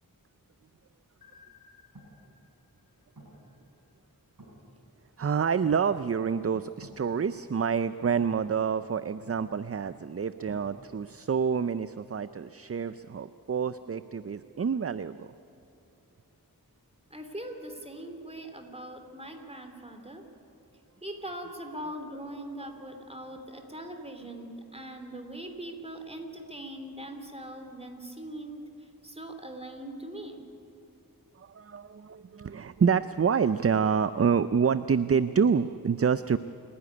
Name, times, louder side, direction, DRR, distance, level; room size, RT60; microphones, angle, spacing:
sound 1, 1.2-4.1, left 6 dB, 75° left, 2.2 m, -60 dB
sound 2, 1.8-10.7, right 1 dB, 60° right, 6.5 m, -55 dB
voice 1, 5.2-15.3 31.4-36.4, right 6 dB, 40° right, 14 dB, 0.5 m, -27 dB
voice 2, 17.1-20.2 21.0-30.4, right 1 dB, 15° right, 5 dB, 2.8 m, -41 dB
28.0 x 11.0 x 9.7 m, 2.9 s
wide cardioid pair, 45°, 36 cm